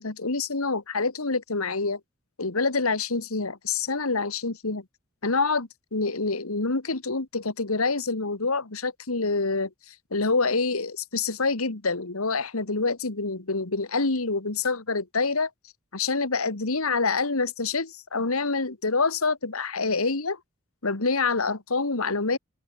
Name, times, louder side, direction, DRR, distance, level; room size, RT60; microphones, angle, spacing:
voice 1, 0.0-2.0 2.4-4.8 5.2-15.5 15.9-20.4 20.8-22.4, left 3 dB, 90° left, 1.9 m, -26 dB
open air
head